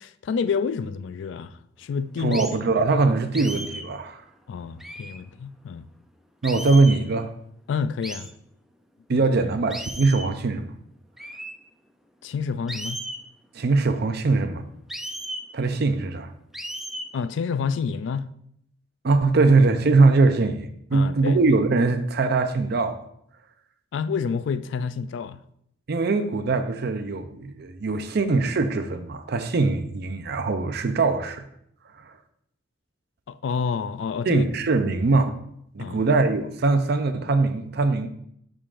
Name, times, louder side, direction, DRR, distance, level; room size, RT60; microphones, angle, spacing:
voice 1, 0.0-2.4 4.5-5.9 7.7-8.3 9.1-9.3 12.2-13.0 17.1-18.3 20.9-21.4 23.9-25.4 33.3-34.5 35.8-36.0, left 6 dB, 70° left, 0.3 m, -28 dB
voice 2, 2.2-4.2 6.4-7.3 9.1-10.7 13.5-14.6 15.5-16.3 19.0-23.0 25.9-31.4 32.0-32.1 34.3-35.3 35.7-38.1, right 3 dB, 60° right, 0.5 m, -22 dB
sound 1, 2.3-2.6 3.3-3.9 4.8-5.2 6.4-7.0 8.0-8.3 9.7-10.3 11.2-11.5 12.7-13.2 14.9-15.5 16.5-17.1, equal, ahead, 0.4 m, -35 dB
11.0 x 3.7 x 2.5 m
head